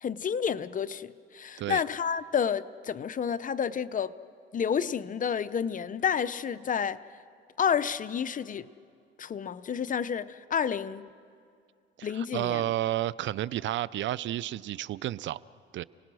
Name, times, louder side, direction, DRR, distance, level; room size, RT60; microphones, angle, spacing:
voice 1, 0.0-4.1 4.5-7.0 7.6-8.7 9.2-11.1 12.0-12.6, left 7 dB, 40° left, 0.7 m, -30 dB
voice 2, 12.0-15.4 15.7-15.8, right 13 dB, 70° right, 0.5 m, -31 dB
30.0 x 19.5 x 6.2 m
cardioid pair, 90°, 20 cm